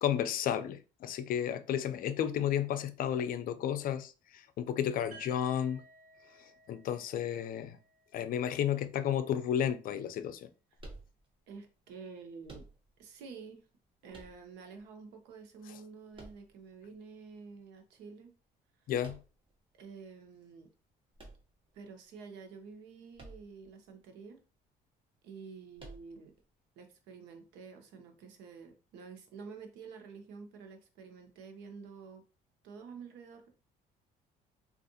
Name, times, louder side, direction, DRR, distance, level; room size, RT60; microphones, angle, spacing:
voice 1, 0.0-5.8 6.4-7.8 8.1-10.5 15.7-15.8 18.9-19.2, left 9 dB, 55° left, 0.4 m, -32 dB
sound 1, 5.1-9.0, right 3 dB, 55° right, 1.2 m, -58 dB
sound 2, 10.8-11.6 12.4-13.1 14.1-14.8 16.1-16.9 19.0-19.6 21.1-22.0 23.1-23.7 24.0-24.1 25.8-26.4, right 2 dB, 30° right, 0.9 m, -52 dB
voice 2, 11.5-12.7 13.0-13.7 14.0-18.3 19.8-20.7 21.7-24.4 25.2-26.3 26.8-32.2 32.6-33.5, right 5 dB, 90° right, 0.8 m, -49 dB
3.5 x 2.4 x 2.7 m
cardioid pair, 110°, 17 cm